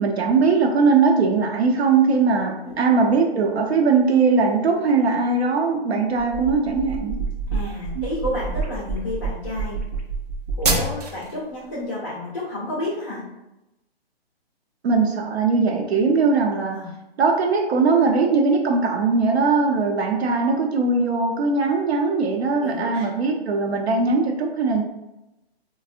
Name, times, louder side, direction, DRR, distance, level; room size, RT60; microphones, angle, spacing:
voice 1, 0.0-7.2 8.0-8.1 14.8-16.8 17.2-24.8, right 4 dB, 80° right, 2 dB, 0.7 m, -20 dB
sound 1, 6.2-11.3, right 3 dB, 40° right, 0.5 m, -27 dB
voice 2, 7.5-9.8 10.6-13.2 16.7-16.9 22.6-23.1, left 1 dB, 20° left, -7 dB, 0.4 m, -30 dB
3.3 x 2.0 x 2.4 m, 0.94 s
hypercardioid pair, 160°, 31 cm